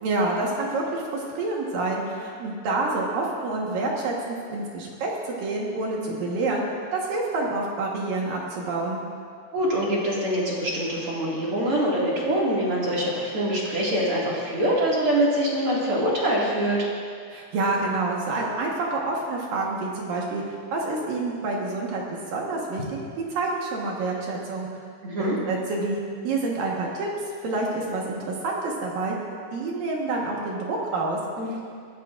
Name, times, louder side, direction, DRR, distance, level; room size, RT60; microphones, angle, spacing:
voice 1, 0.0-6.6 6.9-9.0 17.3-24.7 25.2-27.1 27.4-29.2 29.5-31.2, right 3 dB, 65° right, -2 dB, 2.6 m, -28 dB
voice 2, 9.5-16.9 25.0-25.4 31.4-31.6, right 1 dB, 40° right, -5 dB, 2.1 m, -24 dB
22.0 x 15.0 x 2.5 m, 2.2 s
omnidirectional pair, 5.1 m